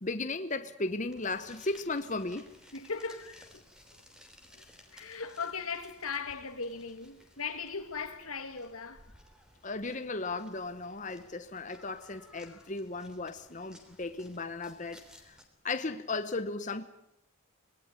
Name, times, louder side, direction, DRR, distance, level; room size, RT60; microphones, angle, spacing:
voice 1, 0.0-2.5 9.6-15.4 15.6-16.8, left 3 dB, 35° left, 1.0 m, -36 dB
sound 1, 1.1-15.4, equal, 5° right, 3.4 m, -58 dB
voice 2, 2.7-3.6 3.9-4.0 4.5-4.6 4.9-9.1 12.4-12.6, left 5 dB, 85° left, 2.5 m, -38 dB
25.5 x 20.0 x 9.7 m
head